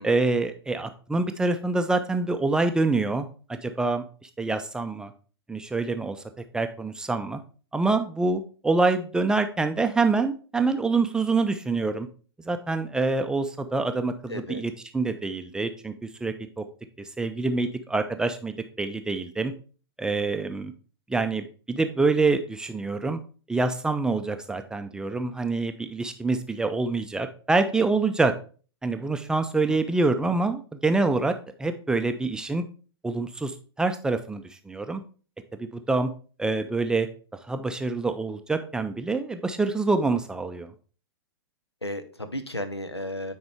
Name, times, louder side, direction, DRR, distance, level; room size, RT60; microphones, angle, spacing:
voice 1, 0.0-5.1 5.5-6.2 6.5-7.4 7.7-12.1 12.4-15.9 16.2-16.6 17.0-19.5 20.0-20.7 21.1-23.2 23.5-28.3 28.8-32.6 33.0-35.0 35.6-36.1 36.4-37.1 37.5-40.7, right 3 dB, 5° right, 7 dB, 0.5 m, -26 dB
voice 2, 14.3-14.6 29.7-29.8 41.8-43.3, left 1 dB, 90° left, 10 dB, 0.9 m, -34 dB
9.5 x 4.4 x 3.4 m, 0.38 s
figure-of-eight pair, 105°, 13 cm